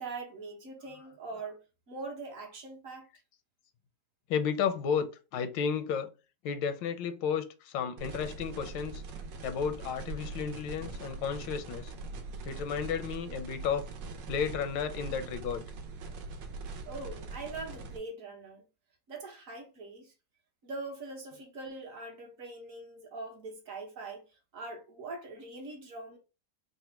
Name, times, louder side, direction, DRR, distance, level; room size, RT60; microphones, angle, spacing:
voice 1, 0.0-3.1 16.9-18.6 19.1-20.1 20.6-24.2 24.5-26.2, right 3 dB, 50° right, 1.2 m, -42 dB
voice 2, 4.3-5.1 5.3-6.1 6.4-9.0 9.4-11.9 12.4-13.9 14.3-15.6, left 7 dB, 85° left, 1.3 m, -32 dB
sound 1, 8.0-18.0, right 3 dB, 75° right, 1.4 m, -42 dB
4.0 x 2.1 x 4.3 m
omnidirectional pair, 2.0 m